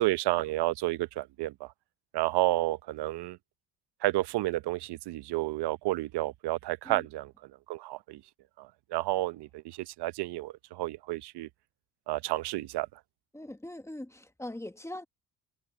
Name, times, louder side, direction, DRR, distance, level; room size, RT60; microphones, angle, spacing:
voice 1, 0.0-1.7 2.1-3.4 4.0-8.2 8.6-11.5 12.1-12.9, right 17 dB, 75° right, 0.8 m, -31 dB
voice 2, 13.3-15.0, left 1 dB, 5° left, 1.2 m, -41 dB
open air
cardioid pair, 85°, 41 cm